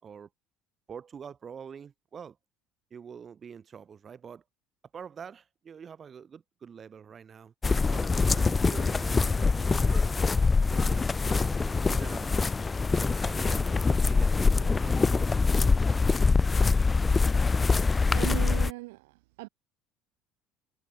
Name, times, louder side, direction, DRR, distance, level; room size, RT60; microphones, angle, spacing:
voice 1, 0.9-2.4 2.9-4.4 4.9-7.5 7.9-10.2 10.7-12.3 12.9-15.5, right 7 dB, 40° right, 5.1 m, -45 dB
sound 1, 7.6-18.7, left 4 dB, 25° left, 0.4 m, -24 dB
voice 2, 18.1-19.5, right 23 dB, 80° right, 0.8 m, -37 dB
hypercardioid pair, 75°, 0 cm